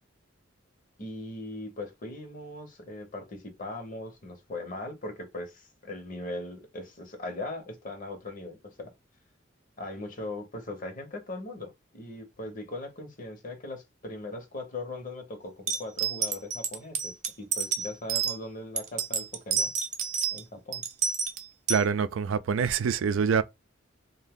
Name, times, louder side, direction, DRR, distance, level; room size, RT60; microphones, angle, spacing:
voice 1, 1.0-8.9 9.8-19.7 20.3-20.8, left 2 dB, 45° left, 0.8 m, -39 dB
sound 1, 15.7-18.4 18.8-20.4 20.7-21.8, right 6 dB, 35° right, 0.5 m, -29 dB
voice 2, 21.7-23.4, right 6 dB, 85° right, 0.4 m, -25 dB
2.6 x 2.1 x 3.5 m
head